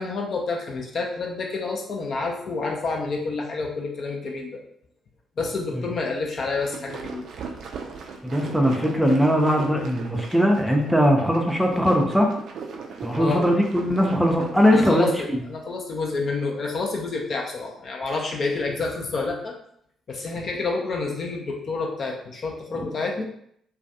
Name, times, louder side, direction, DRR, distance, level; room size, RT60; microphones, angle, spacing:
voice 1, 0.0-4.5 5.4-7.3 13.2-13.5 14.7-19.5 20.1-23.2, left 3 dB, 50° left, 0 dB, 0.5 m, -28 dB
sound 1, 6.4-15.3, right 5 dB, 55° right, 0.3 m, -38 dB
voice 2, 8.2-12.3 13.0-15.4, equal, ahead, 1 dB, 0.5 m, -20 dB
2.3 x 2.2 x 2.6 m, 0.68 s
figure-of-eight pair, 40°, 0 cm